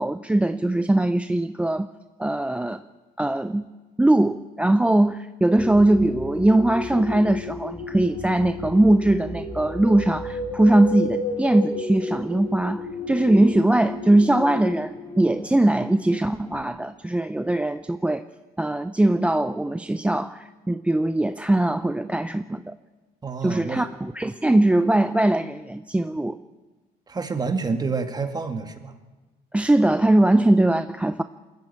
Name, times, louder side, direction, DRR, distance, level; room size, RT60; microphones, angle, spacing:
voice 1, 0.0-1.9 2.2-2.8 3.2-3.7 4.0-18.2 18.6-22.7 23.4-26.4 29.5-31.2, right 1 dB, 5° right, 11 dB, 0.5 m, -21 dB
sound 1, 5.6-16.6, left 2 dB, 15° left, 3.5 m, -32 dB
voice 2, 23.2-23.9 27.1-28.9, right 4 dB, 25° right, 7 dB, 2.1 m, -28 dB
22.0 x 14.0 x 8.7 m, 1.2 s
cardioid pair, 110°, 17 cm